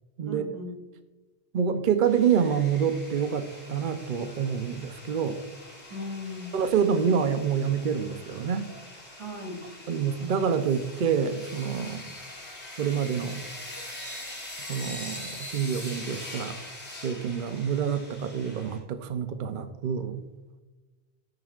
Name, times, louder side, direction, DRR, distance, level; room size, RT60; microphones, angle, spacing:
voice 1, 0.2-0.7 5.9-6.5 9.2-9.6, left 1 dB, 90° right, 1 dB, 2.7 m, -37 dB
voice 2, 1.5-5.4 6.5-8.7 9.9-12.2 12.8-13.4 14.7-16.6 17.0-20.3, right 7 dB, 55° right, 8 dB, 0.7 m, -27 dB
sound 1, 2.0-18.8, left 1 dB, 80° left, 3.0 m, -43 dB
12.5 x 10.5 x 2.4 m, 1.1 s
omnidirectional pair, 1.1 m